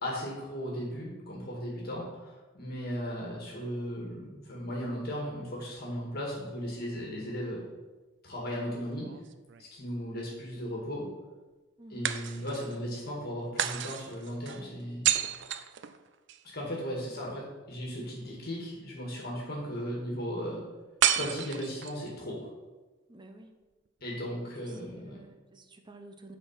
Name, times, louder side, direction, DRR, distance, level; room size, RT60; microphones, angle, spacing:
voice 1, 0.0-7.6 8.2-9.1 9.7-11.1 11.9-15.1 16.5-20.6 21.1-22.5 24.0-25.2, equal, 50° left, -3 dB, 1.9 m, -36 dB
sound 1, 8.9-10.0 12.0-12.8 13.6-16.4 21.0-22.1, right 10 dB, 65° right, 0.5 m, -31 dB
voice 2, 11.8-12.1 17.1-17.2 23.1-23.5 24.7-26.4, right 1 dB, 25° right, 6 dB, 0.8 m, -51 dB
8.7 x 4.6 x 5.7 m, 1.2 s
head